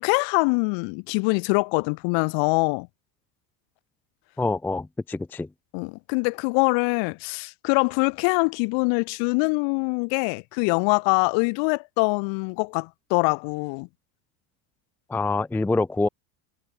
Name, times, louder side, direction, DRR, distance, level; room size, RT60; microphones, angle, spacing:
voice 1, 0.0-2.9 5.7-13.9, left 34 dB, 60° left, 3.6 m, -24 dB
voice 2, 4.4-5.5 15.1-16.1, left 3 dB, 5° left, 0.4 m, -25 dB
supercardioid pair, 130°, 49 cm